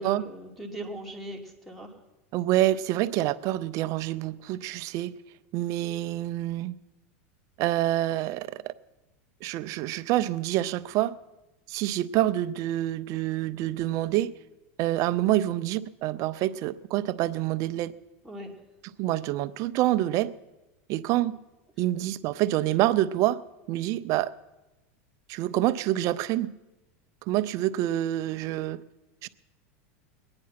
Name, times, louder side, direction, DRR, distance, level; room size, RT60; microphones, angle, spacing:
voice 1, 0.0-1.9 18.2-18.6, right 1 dB, ahead, 2.3 m, -39 dB
voice 2, 2.3-5.2 5.5-6.8 7.6-8.7 9.4-11.1 11.7-14.3 14.8-17.9 19.0-20.3 20.9-21.3 21.8-23.4 23.7-24.3 25.3-26.5 27.3-28.8 29.2-29.3, right 14 dB, 45° right, 0.6 m, -27 dB
22.0 x 9.8 x 5.8 m
supercardioid pair, 125°, 7 cm